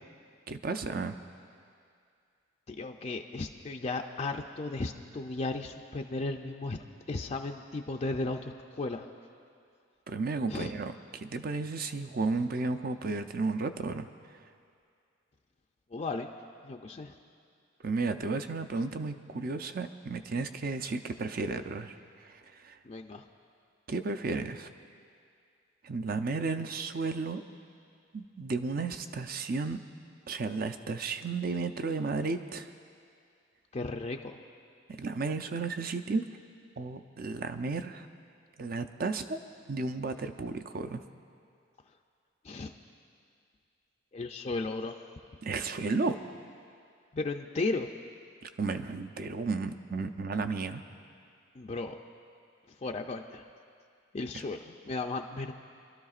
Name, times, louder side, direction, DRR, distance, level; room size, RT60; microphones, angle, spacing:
voice 1, 0.5-1.2 10.1-14.1 17.8-22.0 22.6-22.8 23.9-24.7 25.8-27.4 28.1-29.8 30.3-32.7 35.0-36.2 36.8-38.1 38.6-39.4 39.7-41.0 45.4-46.2 48.4-50.8, right 3 dB, 50° right, 8 dB, 0.5 m, -33 dB
voice 2, 2.7-9.1 10.5-10.8 15.9-16.3 16.6-17.2 22.8-23.3 33.7-34.3 42.4-42.7 44.1-45.0 47.1-47.9 51.5-52.0 52.7-53.4 54.1-55.5, left 3 dB, 35° left, 3 dB, 0.4 m, -35 dB
26.5 x 12.5 x 2.4 m, 2.4 s
head